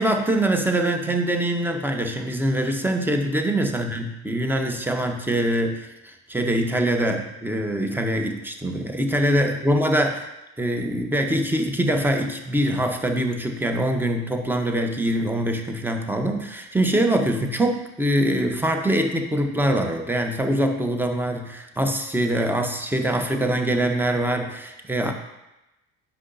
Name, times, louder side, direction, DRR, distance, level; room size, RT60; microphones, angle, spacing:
voice 1, 0.0-10.3 10.6-25.1, right 1 dB, 5° right, 4 dB, 1.0 m, -23 dB
9.7 x 5.7 x 2.8 m, 0.93 s
hypercardioid pair, 55°, 44 cm